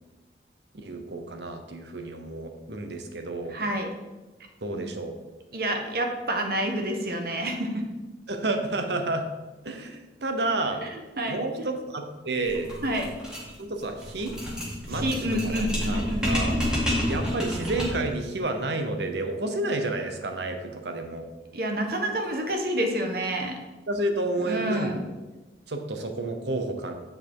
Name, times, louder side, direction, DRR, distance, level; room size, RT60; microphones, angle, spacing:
voice 1, 0.8-3.6 4.6-5.2 8.3-9.3 9.6-10.8 11.3-12.7 13.6-14.4 14.9-16.6 17.1-21.3 23.9-24.9 25.7-26.9, right 2 dB, 75° right, 6 dB, 0.9 m, -30 dB
voice 2, 3.5-3.9 5.5-7.8 10.8-11.4 12.8-13.1 14.9-16.3 21.5-23.5 24.4-25.0, right 1 dB, 55° right, 4 dB, 1.1 m, -28 dB
sound 1, 12.4-18.1, equal, 5° right, 1.8 m, -29 dB
7.7 x 4.7 x 4.7 m, 1.2 s
head